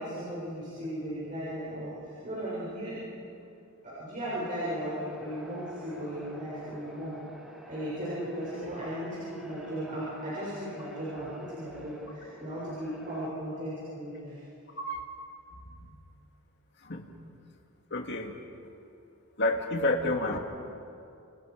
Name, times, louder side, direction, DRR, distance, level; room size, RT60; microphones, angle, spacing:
voice 1, 0.0-3.1 3.8-7.2 7.6-14.4, equal, 40° right, -9 dB, 7.3 m, -36 dB
sound 1, 4.3-13.3, equal, ahead, 2.4 m, -50 dB
voice 2, 14.8-15.1 15.6-16.0 16.8-17.1 17.9-18.4 19.4-20.4, left 2 dB, 55° left, 2 dB, 2.3 m, -30 dB
29.5 x 28.5 x 5.2 m, 2.7 s
head